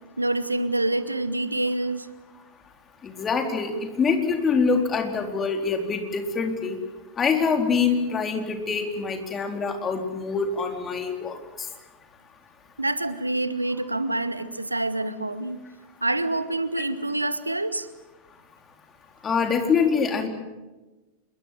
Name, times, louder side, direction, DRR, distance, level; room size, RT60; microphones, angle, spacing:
voice 1, 0.2-2.1 12.8-15.6 16.0-17.9, right 2 dB, 85° right, 14 dB, 1.3 m, -26 dB
voice 2, 3.0-3.7 4.0-6.8 7.2-11.3 19.2-20.3, left 5 dB, 20° left, 4 dB, 4.2 m, -24 dB
27.5 x 23.0 x 7.8 m, 1.1 s
figure-of-eight pair, 90°, 0 cm